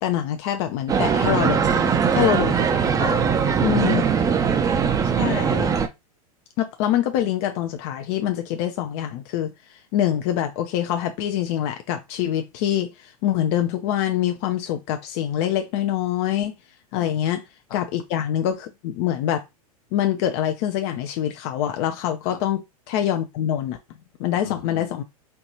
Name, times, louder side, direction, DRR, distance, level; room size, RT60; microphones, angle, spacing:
voice 1, 0.0-1.6 2.1-3.3 3.6-4.0 5.2-5.7 6.6-9.5 9.9-16.5 16.9-17.4 17.7-19.4 19.9-22.6 22.9-23.8 24.2-25.0, left 11 dB, 50° left, 0.6 m, -25 dB
sound 1, 0.9-5.9, right 6 dB, 20° right, 0.5 m, -21 dB
voice 2, 1.7-2.2 3.1-3.9 4.2-4.7 17.0-17.1 17.7-17.8 22.3-22.4 24.3-24.9, left 9 dB, 75° left, 1.0 m, -39 dB
4.5 x 2.5 x 2.8 m
hypercardioid pair, 105°, 19 cm